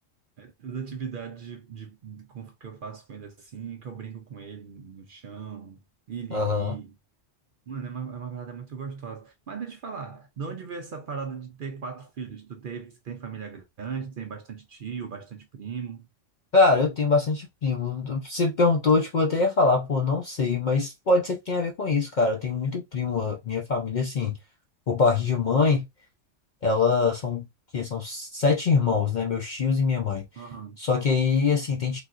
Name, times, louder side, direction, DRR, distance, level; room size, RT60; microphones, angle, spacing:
voice 1, 0.4-5.8 6.1-6.9 7.7-16.1 30.4-30.8, right 6 dB, 60° right, 0.5 m, -38 dB
voice 2, 6.3-6.7 16.5-24.4 24.9-25.8 26.6-27.5 27.7-30.3 30.8-32.0, left 4 dB, 55° left, 0.5 m, -23 dB
3.4 x 2.5 x 2.4 m
omnidirectional pair, 1.3 m